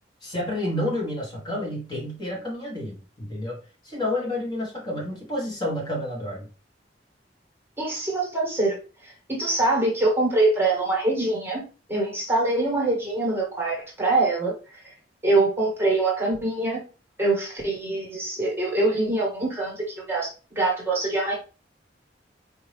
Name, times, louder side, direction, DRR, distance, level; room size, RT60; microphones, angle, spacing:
voice 1, 0.2-3.6 3.8-6.5, left 1 dB, 25° left, -3 dB, 1.4 m, -30 dB
voice 2, 7.8-8.8 9.0-11.6 11.9-14.5 15.2-16.8 17.2-21.3, right 2 dB, 15° right, -3 dB, 1.4 m, -24 dB
4.5 x 2.7 x 3.3 m, 0.34 s
head